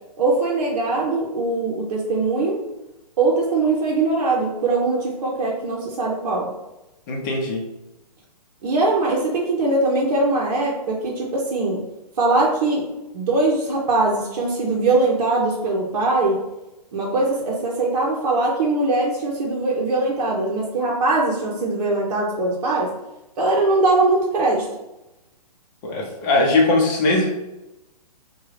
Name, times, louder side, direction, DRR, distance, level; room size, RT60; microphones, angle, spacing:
voice 1, 0.2-2.6 3.2-6.5 8.6-11.8 12.2-12.9 13.1-16.4 16.9-22.9 23.4-24.7, right 2 dB, 55° right, -3 dB, 0.8 m, -21 dB
voice 2, 7.1-7.6 25.8-27.3, left 2 dB, 30° left, -1 dB, 0.8 m, -20 dB
3.6 x 2.3 x 3.2 m, 0.94 s
hypercardioid pair, 150°, 21 cm